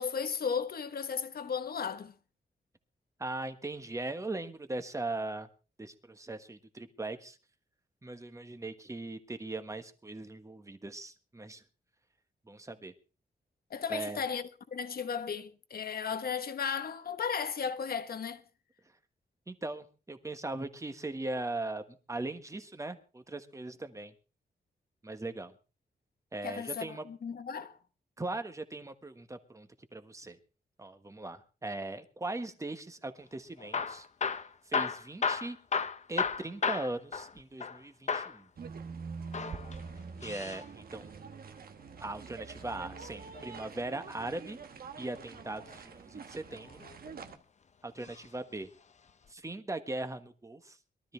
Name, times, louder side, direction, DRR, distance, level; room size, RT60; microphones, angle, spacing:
voice 1, 0.0-2.1 13.7-14.4 14.7-18.4 26.4-27.8, left 6 dB, 60° left, 1.2 m, -35 dB
voice 2, 3.2-5.5 5.8-7.4 8.0-11.6 12.4-12.9 13.9-14.2 19.5-24.1 25.0-25.5 26.3-27.0 28.2-30.4 30.8-34.1 34.6-35.6 36.1-38.5 40.2-41.1 42.0-44.6 45.0-46.8 47.8-48.7 49.3-50.8, right 2 dB, 20° right, 1.4 m, -39 dB
Hammer / Drill, 33.6-37.8 38.1-38.4 39.2-40.6 42.4-43.6 45.3-45.8 46.5-47.3 48.0-48.3 48.6-48.7 49.3-49.4, left 5 dB, 40° left, 0.8 m, -34 dB
sound 1, 38.6-47.4, right 5 dB, 60° right, 1.3 m, -46 dB
22.0 x 13.0 x 3.4 m
wide cardioid pair, 135°, 17 cm